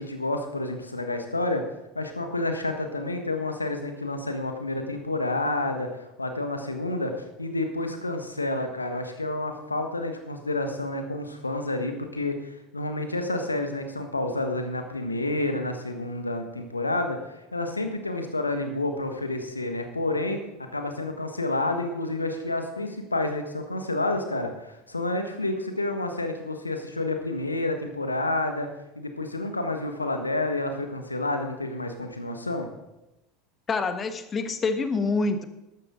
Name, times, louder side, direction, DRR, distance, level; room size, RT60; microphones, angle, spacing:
voice 1, 0.0-1.6 1.9-20.4 20.7-28.7 28.9-32.7, left 2 dB, 90° left, 6 dB, 1.4 m, -29 dB
voice 2, 33.7-35.4, left 3 dB, 25° left, 10 dB, 1.3 m, -26 dB
14.0 x 12.0 x 3.8 m, 0.95 s
figure-of-eight pair, 75°, 0 cm